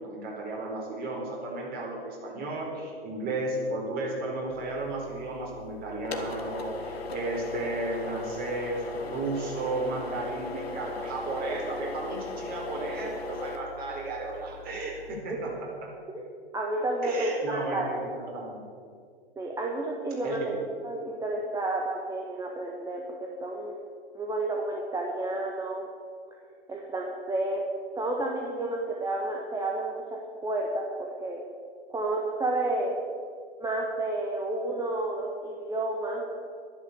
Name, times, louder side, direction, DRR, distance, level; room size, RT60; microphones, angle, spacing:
voice 1, 0.0-15.5 17.0-18.6 20.2-20.5, right 2 dB, 30° right, -2 dB, 4.6 m, -34 dB
sound 1, 4.5-15.2, left 3 dB, 75° left, 1.6 m, -38 dB
voice 2, 11.5-11.9 15.3-15.6 16.1-16.2 16.5-18.3 19.4-20.5 20.8-23.8 24.1-25.9 26.7-27.6 28.0-31.4 31.9-33.0 33.6-36.3, right 2 dB, 10° right, -1 dB, 1.4 m, -31 dB
11.5 x 11.0 x 7.0 m, 2.1 s
figure-of-eight pair, 110°, 31 cm